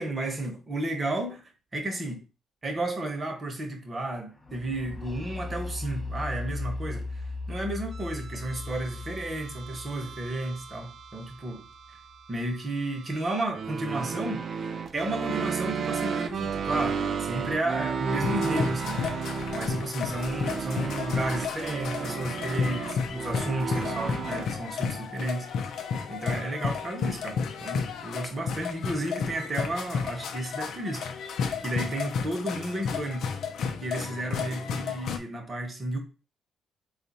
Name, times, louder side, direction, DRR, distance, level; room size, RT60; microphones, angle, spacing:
voice 1, 0.0-2.2 2.6-11.6 12.3-19.1 19.5-25.7 26.1-33.3 33.8-36.0, right 1 dB, 30° right, 1.2 m, -33 dB
sound 1, 4.4-12.1, left 3 dB, 15° left, 0.7 m, -38 dB
sound 2, 7.9-24.5, right 6 dB, 55° right, 0.4 m, -33 dB
sound 3, 18.2-35.2, left 6 dB, 70° left, 0.6 m, -32 dB
3.8 x 2.5 x 4.1 m
cardioid pair, 90°, 0 cm